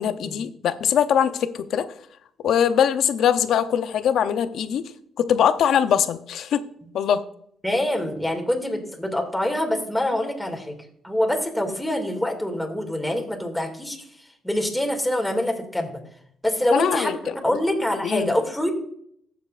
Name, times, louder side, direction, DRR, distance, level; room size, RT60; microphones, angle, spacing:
voice 1, 0.0-1.9 2.4-4.9 5.2-6.6 6.9-7.2 16.7-17.2 17.5-17.6 18.0-18.3, left 8 dB, 70° left, 11 dB, 0.6 m, -22 dB
voice 2, 7.6-10.8 11.0-14.1 14.4-15.9 16.4-18.7, left 1 dB, 5° left, 2 dB, 2.3 m, -25 dB
15.0 x 7.0 x 2.5 m, 0.68 s
cardioid pair, 90°, 0 cm